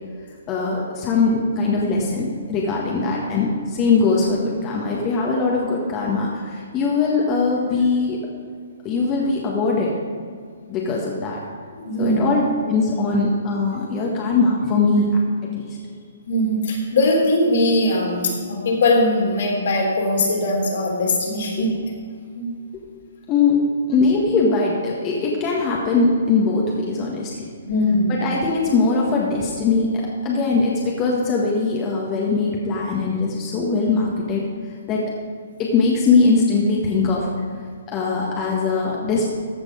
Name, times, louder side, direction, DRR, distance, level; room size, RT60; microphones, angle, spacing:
voice 1, 0.5-8.2 8.8-9.9 10.7-11.4 12.0-15.1 15.5-15.8 21.5-21.7 22.7-22.8 23.3-23.6 23.9-27.5 28.1-29.9 30.2-34.5 34.9-35.1 35.6-37.3 37.9-39.2, left 4 dB, 25° left, -3 dB, 1.6 m, -21 dB
voice 2, 11.8-12.3 16.3-21.7 22.3-22.5 27.6-28.3, left 1 dB, 65° left, -1 dB, 3.2 m, -20 dB
14.5 x 5.9 x 5.1 m, 2.1 s
hypercardioid pair, 135°, 0 cm